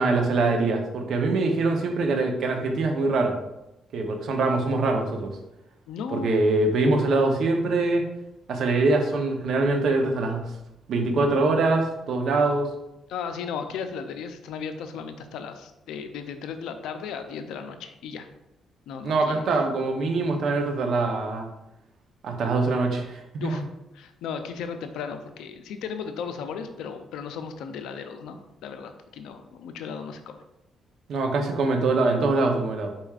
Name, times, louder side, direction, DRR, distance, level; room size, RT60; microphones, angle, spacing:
voice 1, 0.0-3.4 3.9-5.3 6.1-8.0 8.5-10.5 10.9-12.7 19.0-21.5 22.2-23.6 31.1-32.9, right 3 dB, 65° right, 4 dB, 0.7 m, -23 dB
voice 2, 5.9-6.3 13.1-18.3 18.9-19.4 23.4-23.6 23.9-30.4, left 6 dB, 85° left, 8 dB, 0.4 m, -35 dB
4.8 x 4.2 x 2.4 m, 0.90 s
cardioid pair, 90°, 0 cm